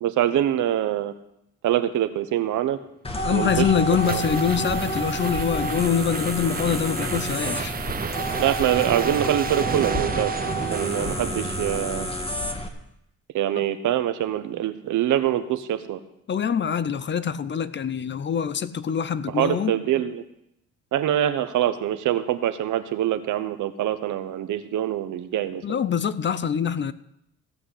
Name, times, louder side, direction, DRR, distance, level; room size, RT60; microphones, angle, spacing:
voice 1, 0.0-1.1 1.6-2.8 3.3-3.7 4.1-4.2 8.4-10.3 10.7-12.1 13.3-16.0 19.3-20.2 20.9-25.6, right 11 dB, 80° right, 1.1 m, -24 dB
sound 1, 3.0-12.7, equal, 20° left, 1.7 m, -30 dB
voice 2, 3.2-7.7 11.0-11.1 13.6-13.7 16.3-19.7 25.6-26.9, left 7 dB, 40° left, 0.6 m, -24 dB
sound 2, 3.4-12.2, right 6 dB, 30° right, 0.7 m, -32 dB
16.0 x 5.8 x 8.3 m
cardioid pair, 90°, 30 cm